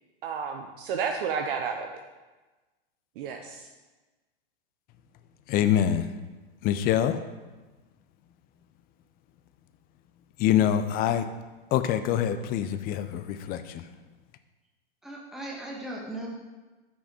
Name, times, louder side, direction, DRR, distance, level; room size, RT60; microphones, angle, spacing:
voice 1, 0.2-2.0 3.2-3.7, right 6 dB, 60° right, 4 dB, 0.7 m, -31 dB
voice 2, 5.5-6.1 6.6-7.2 10.4-11.3 11.7-13.9, left 10 dB, 30° left, 10 dB, 0.5 m, -25 dB
voice 3, 15.0-16.3, right 1 dB, ahead, -3 dB, 1.3 m, -37 dB
6.3 x 5.9 x 4.3 m, 1.2 s
hypercardioid pair, 115°, 31 cm